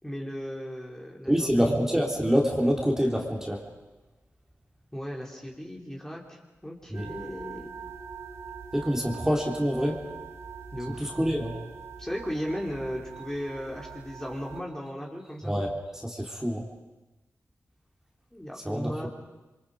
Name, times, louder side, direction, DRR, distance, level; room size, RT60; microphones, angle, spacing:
voice 1, 0.0-1.9 4.9-7.7 10.7-11.1 12.0-15.6 18.3-19.1, equal, 10° left, -1 dB, 3.9 m, -36 dB
voice 2, 1.3-3.6 6.9-7.0 8.7-10.0 11.0-11.5 15.5-15.7 16.0-16.6 18.7-18.9, equal, 10° right, 0 dB, 3.9 m, -26 dB
sound 1, 6.9-14.6, right 6 dB, 70° right, 3.7 m, -43 dB
27.5 x 23.5 x 5.2 m, 1.1 s
cardioid pair, 60°, 5 cm